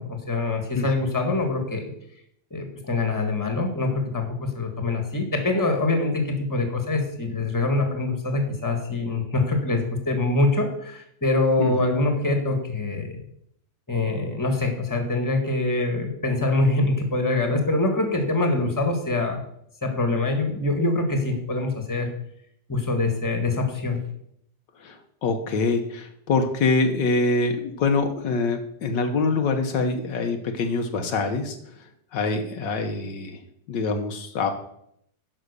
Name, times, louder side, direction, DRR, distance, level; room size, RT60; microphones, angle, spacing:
voice 1, 0.0-1.9 2.5-13.2 13.9-19.4 19.8-22.1 22.7-24.0, left 2 dB, 10° left, 5 dB, 1.6 m, -24 dB
voice 2, 24.8-33.4 33.7-34.5, left 3 dB, 75° left, 5 dB, 1.7 m, -25 dB
9.9 x 5.9 x 6.8 m, 0.72 s
omnidirectional pair, 2.0 m